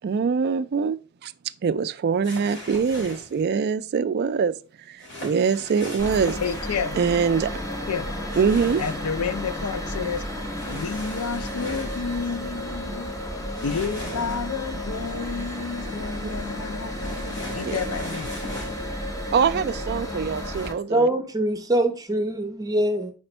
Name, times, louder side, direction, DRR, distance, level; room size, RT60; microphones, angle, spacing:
voice 1, 0.0-1.3 1.6-6.4 7.0-7.5 8.4-8.8 16.2-16.3 17.6-17.8 19.3-21.1, right 6 dB, 50° right, 0.3 m, -24 dB
sound 1, 2.2-3.4 5.0-6.7 8.3-9.1 10.5-12.0 13.5-14.7 17.0-18.9 20.5-20.7, left 1 dB, 55° left, 3.4 m, -39 dB
sound 2, 6.0-20.7, equal, 15° left, 0.8 m, -32 dB
voice 2, 6.4-7.0 7.9-8.2 8.8-10.2 10.7-13.2 13.6-18.3, left 5 dB, 90° left, 0.5 m, -30 dB
voice 3, 20.9-23.1, right 1 dB, 15° right, 0.7 m, -23 dB
5.0 x 4.3 x 4.3 m
head